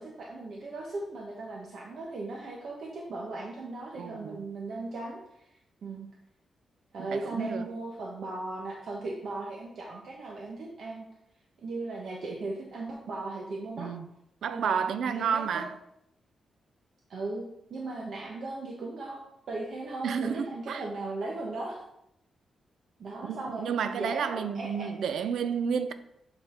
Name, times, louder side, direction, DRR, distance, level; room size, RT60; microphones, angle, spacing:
voice 1, 0.0-6.1 6.9-11.0 11.6-13.9 14.5-14.7 15.1-15.5 17.1-17.4 17.7-21.8 23.0-23.7 24.0-24.9, right 2 dB, 60° right, 1.0 m, -37 dB
voice 2, 4.0-4.4 7.0-7.7 13.8-14.1 14.4-15.7 20.0-20.8 23.2-25.9, right 7 dB, 75° right, 0.5 m, -31 dB
7.8 x 3.9 x 4.3 m
wide cardioid pair, 155°, 0 cm